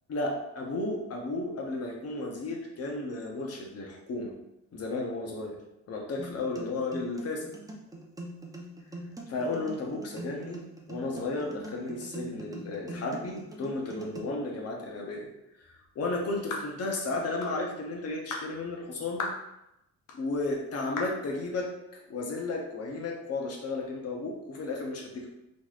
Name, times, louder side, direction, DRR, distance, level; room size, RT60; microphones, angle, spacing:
voice 1, 0.1-4.3 4.7-5.6 5.9-7.6 9.3-10.6 10.9-15.3 15.9-19.2 20.1-21.7 22.1-25.3, left 2 dB, 55° left, 0 dB, 1.0 m, -33 dB
sound 1, 6.2-14.2, right 1 dB, 10° right, 0.6 m, -43 dB
sound 2, 16.5-16.7 17.4-17.6 18.3-18.5 19.2-19.4 20.1-20.2 21.0-21.2, left 3 dB, 85° left, 0.7 m, -35 dB
3.8 x 3.2 x 2.4 m, 0.87 s
cardioid pair, 90°, 30 cm